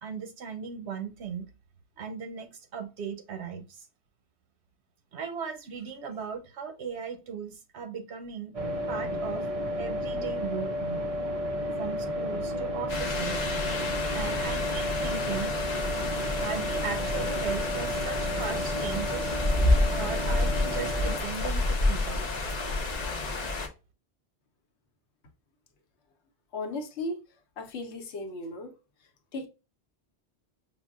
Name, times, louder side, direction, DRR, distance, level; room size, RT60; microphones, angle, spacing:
voice 1, 0.0-1.5 2.0-3.9 5.1-8.6 8.9-9.5 9.8-11.0 11.8-13.4 14.1-15.6 16.4-19.4 19.9-22.2, right 6 dB, 80° right, 1.0 m, -37 dB
sound 1, 8.5-21.2, equal, 40° right, 0.6 m, -32 dB
sound 2, 12.9-23.7, left 2 dB, 45° left, 0.6 m, -29 dB
voice 2, 26.5-27.2 27.6-28.7 29.3-29.5, left 2 dB, 80° left, 1.0 m, -35 dB
5.7 x 2.1 x 2.3 m
omnidirectional pair, 1.1 m